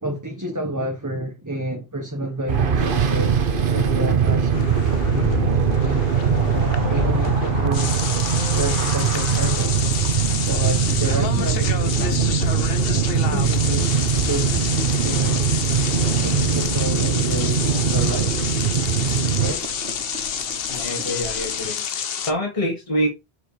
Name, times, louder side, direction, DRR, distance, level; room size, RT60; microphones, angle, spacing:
voice 1, 0.0-3.4 3.7-6.2 6.9-7.9 8.5-9.9 10.5-12.5 13.2-15.4 16.0-18.4 19.4-19.7 20.2-20.4, right 1 dB, 15° right, 1.3 m, -30 dB
sound 1, 2.5-19.5, right 7 dB, 55° right, 1.1 m, -21 dB
sound 2, 4.5-22.3, left 8 dB, 60° left, 1.0 m, -28 dB
Boiling, 9.0-21.7, right 3 dB, 85° right, 1.5 m, -39 dB
voice 2, 20.7-23.1, equal, 30° left, 2.3 m, -26 dB
7.5 x 6.4 x 3.3 m
omnidirectional pair, 1.1 m